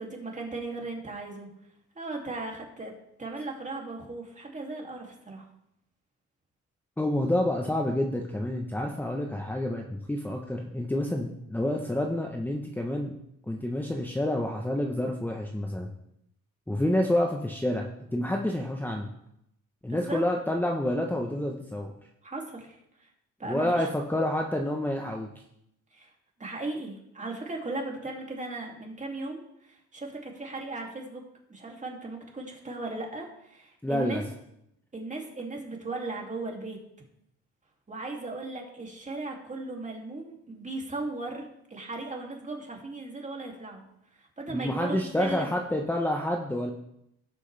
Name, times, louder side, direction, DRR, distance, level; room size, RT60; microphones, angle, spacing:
voice 1, 0.0-1.5 2.0-2.9 3.2-5.4 19.9-20.2 22.2-23.1 23.4-23.9 25.9-26.1 26.4-31.2 31.5-34.2 34.9-36.8 37.9-43.8 44.1-45.5, right 2 dB, 25° right, 0 dB, 2.6 m, -37 dB
voice 2, 7.0-13.1 13.5-15.9 16.7-17.9 18.1-19.1 19.8-21.9 23.4-25.3 33.8-34.2 44.5-46.7, left 1 dB, 5° left, 1 dB, 1.0 m, -28 dB
17.0 x 6.4 x 3.4 m, 0.78 s
cardioid pair, 90°, 30 cm